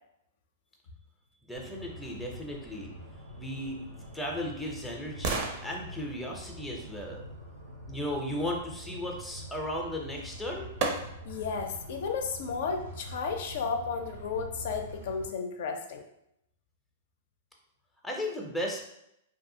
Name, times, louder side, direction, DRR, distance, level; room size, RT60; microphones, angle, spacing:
voice 1, 1.4-2.9 3.4-7.2 7.9-10.7 18.0-18.8, left 1 dB, ahead, -1 dB, 0.5 m, -36 dB
sound 1, 1.5-15.3, equal, 85° right, 0.8 m, -45 dB
sound 2, 3.8-7.8 9.9-10.0 10.8-11.5 12.0-12.1, right 4 dB, 50° right, 0.5 m, -37 dB
voice 2, 11.2-16.0, left 5 dB, 65° left, 4 dB, 0.4 m, -33 dB
2.6 x 2.4 x 2.6 m, 0.79 s
hypercardioid pair, 110°, 0 cm